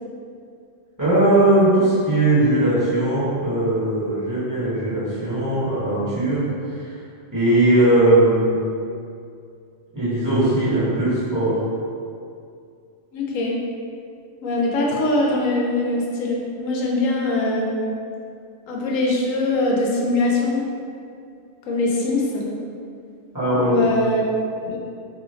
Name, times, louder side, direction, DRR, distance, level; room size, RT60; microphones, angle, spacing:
voice 1, 1.0-6.4 6.7-6.9 7.3-8.6 9.9-11.6 23.3-23.9, right 1 dB, 15° right, -13 dB, 0.9 m, -19 dB
voice 2, 13.1-13.6 14.4-17.8 18.7-20.7 21.7-22.5 23.5-24.3 24.6-24.8, left 2 dB, 90° left, -2 dB, 1.0 m, -22 dB
2.7 x 2.4 x 3.1 m, 2.4 s
omnidirectional pair, 1.3 m